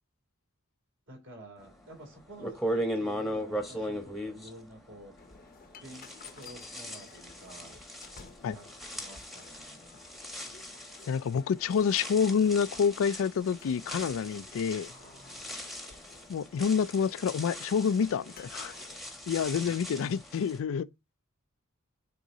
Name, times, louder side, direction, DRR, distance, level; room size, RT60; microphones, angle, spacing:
voice 1, 1.1-5.1 5.8-7.8 8.4-8.6 8.9-9.9 14.9-15.5 19.6-19.7, right 1 dB, 60° right, 3.1 m, -50 dB
sound 1, 1.9-2.0 2.4-5.5 5.8-20.6, equal, ahead, 1.0 m, -39 dB
sound 2, 5.2-19.0, left 5 dB, 40° left, 0.7 m, -55 dB
voice 2, 11.1-14.9 16.3-18.7 19.3-20.9, left 6 dB, 65° left, 0.3 m, -28 dB
9.1 x 3.9 x 2.7 m
head